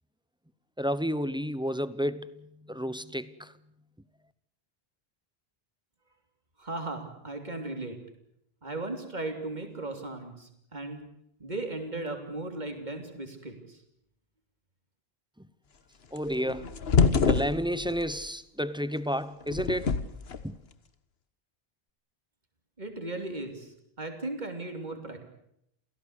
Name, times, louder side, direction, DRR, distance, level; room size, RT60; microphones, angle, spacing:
voice 1, 0.8-3.5 15.4-15.5 16.1-16.7 17.3-20.0 20.4-20.6, equal, 5° right, 0.9 m, -31 dB
voice 2, 6.6-8.0 8.6-11.0 11.4-13.8 22.8-25.2, right 2 dB, 45° right, 3.4 m, -37 dB
sound 1, 16.2-18.1 19.4-20.4, left 5 dB, 80° left, 1.5 m, -25 dB
28.5 x 17.0 x 8.2 m
omnidirectional pair, 1.0 m